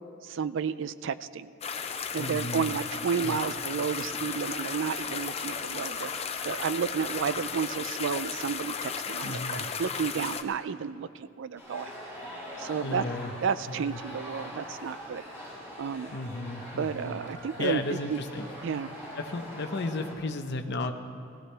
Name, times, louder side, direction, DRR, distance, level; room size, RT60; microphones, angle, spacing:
voice 1, 0.2-1.5 2.1-6.1 6.4-11.9 12.6-13.0 13.4-15.2 15.8-16.1 16.8-17.8 18.1-18.2 18.6-18.9, right 6 dB, 65° right, 14 dB, 0.4 m, -31 dB
sound 1, 1.6-10.4, left 6 dB, 30° left, 0.6 m, -35 dB
voice 2, 2.2-2.7 3.2-3.4 5.3-5.5 9.2-9.7 12.4-13.3 13.7-14.0 16.1-17.2 17.6-18.5 19.2-20.9, left 2 dB, 60° left, 6 dB, 0.8 m, -34 dB
Human voice / Acoustic guitar, 2.4-10.4, left 2 dB, 85° left, 1.6 m, -56 dB
sound 2, 11.6-20.1, equal, 15° right, 4.3 m, -43 dB
19.5 x 15.5 x 3.3 m, 2.5 s
head